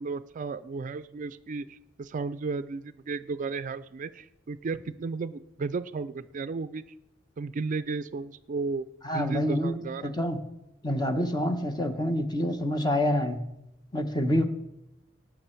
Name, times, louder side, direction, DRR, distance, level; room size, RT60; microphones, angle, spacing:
voice 1, 0.0-6.8 7.4-8.9 9.1-10.2, right 4 dB, 40° right, 14 dB, 0.4 m, -34 dB
voice 2, 9.0-9.8 10.0-10.4 10.8-13.4 13.9-14.5, left 1 dB, 20° left, 7 dB, 1.0 m, -27 dB
18.5 x 6.2 x 4.5 m, 0.89 s
head